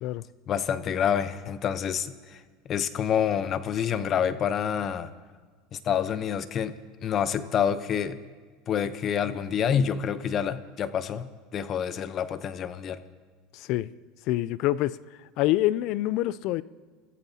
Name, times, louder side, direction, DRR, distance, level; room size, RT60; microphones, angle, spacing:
voice 1, 0.5-2.4 2.7-5.1 5.7-6.8 7.0-8.2 8.7-13.0, left 8 dB, 40° left, 13 dB, 0.8 m, -27 dB
voice 2, 13.5-13.9 14.3-15.0 15.4-16.6, left 15 dB, 60° left, 19 dB, 0.4 m, -26 dB
27.0 x 14.5 x 2.8 m, 1.5 s
supercardioid pair, 110°, 0 cm